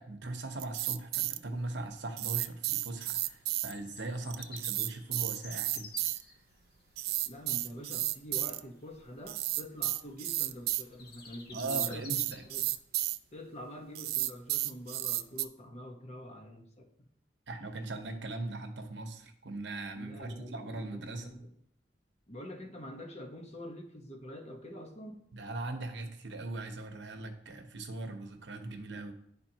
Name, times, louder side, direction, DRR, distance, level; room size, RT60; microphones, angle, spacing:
voice 1, 0.0-5.9 11.5-12.4 17.5-21.4 25.3-29.1, right 2 dB, 80° right, 6 dB, 0.9 m, -40 dB
sound 1, 0.6-1.4 2.2-3.7 4.3-6.2 7.0-8.6 9.3-10.8 11.5-13.2 14.0-15.5, right 16 dB, 55° right, 0.3 m, -32 dB
Bird vocalization bird call bird song, 3.2-12.8, left 3 dB, 60° left, 1.1 m, -53 dB
voice 2, 7.3-12.7 13.3-17.1 19.9-21.5 22.3-25.3, equal, 35° left, 2 dB, 1.0 m, -46 dB
10.5 x 4.0 x 2.8 m, 0.68 s
head